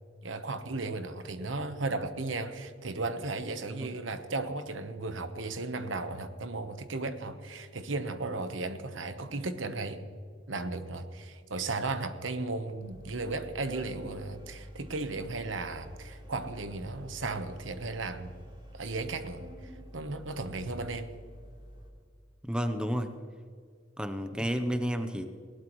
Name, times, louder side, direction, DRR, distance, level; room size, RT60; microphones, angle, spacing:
voice 1, 0.2-10.0 10.5-18.3 18.7-21.1, right 3 dB, 70° right, 9 dB, 1.1 m, -35 dB
Organ, 12.8-21.9, equal, 25° right, 3.3 m, -49 dB
voice 2, 22.4-23.1 24.0-25.2, equal, 5° right, 8 dB, 0.7 m, -31 dB
20.0 x 17.5 x 3.1 m, 2.2 s
head